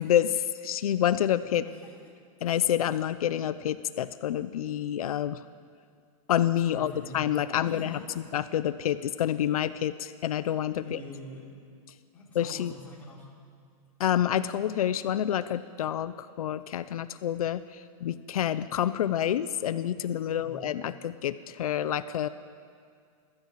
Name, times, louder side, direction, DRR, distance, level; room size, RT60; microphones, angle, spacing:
voice 1, 0.0-1.7 2.4-5.4 6.3-8.0 8.3-11.0 12.3-12.7 14.0-17.6 18.0-22.3, left 10 dB, 85° left, 12 dB, 0.9 m, -28 dB
voice 2, 1.6-2.2 6.6-7.2 7.6-8.2 10.8-11.5 12.1-13.4 20.3-20.7, left 1 dB, 10° left, -6 dB, 3.8 m, -45 dB
30.0 x 13.5 x 7.6 m, 2.2 s
supercardioid pair, 180°, 18 cm